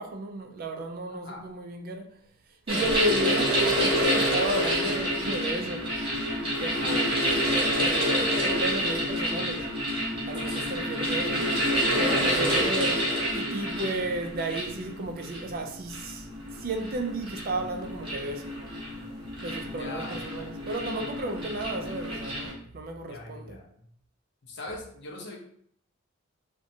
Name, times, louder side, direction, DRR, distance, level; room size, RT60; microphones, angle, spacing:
voice 1, 0.0-2.0 2.7-5.9 6.6-9.7 10.3-11.4 11.9-13.0 13.3-16.3 16.6-18.5 19.4-23.6, right 2 dB, 45° right, 0.3 m, -33 dB
voice 2, 1.1-1.4 2.8-3.0 6.7-7.4 10.4-10.8 12.2-12.6 19.8-20.5 23.1-23.9 24.4-25.4, left 2 dB, 55° left, 0.6 m, -42 dB
sound 1, 2.7-22.5, equal, 25° right, 0.8 m, -28 dB
2.7 x 2.1 x 2.6 m
head